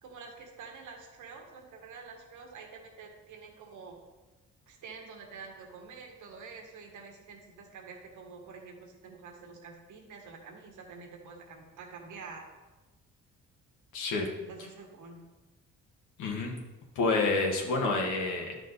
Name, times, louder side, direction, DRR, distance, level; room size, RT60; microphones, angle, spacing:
voice 1, 0.0-4.0 4.7-12.4 14.4-15.2, right 5 dB, 80° right, 3 dB, 1.7 m, -47 dB
voice 2, 13.9-14.3 16.2-16.5 16.9-18.6, left 3 dB, 80° left, 0 dB, 1.7 m, -28 dB
10.5 x 6.2 x 4.1 m, 1.2 s
cardioid pair, 90°, 30 cm